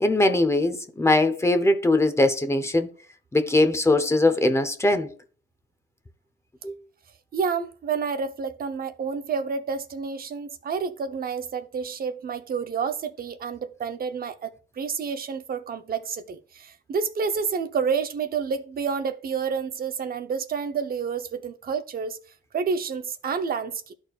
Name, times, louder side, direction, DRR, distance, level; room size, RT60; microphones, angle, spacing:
voice 1, 0.0-2.9 3.3-5.1 6.6-6.7, left 2 dB, 15° left, 0.8 m, -21 dB
voice 2, 7.3-22.2 22.5-23.9, right 6 dB, 50° right, 0.8 m, -29 dB
12.0 x 4.4 x 2.4 m
cardioid pair, 90°, 20 cm